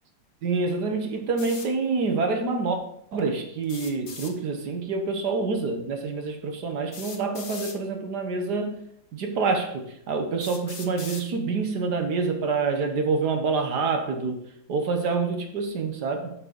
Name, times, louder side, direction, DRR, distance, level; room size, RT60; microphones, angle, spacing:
voice 1, 0.4-2.8 3.1-8.8 9.1-14.4 14.7-16.3, right 4 dB, 60° right, 1.6 m, -27 dB
sound 1, 1.4-1.7 3.6-4.3 5.8-5.9 6.9-7.8 8.8-8.9 9.6-9.7 10.4-11.3, left 5 dB, 45° left, 0.7 m, -40 dB
7.3 x 6.3 x 5.2 m
omnidirectional pair, 2.1 m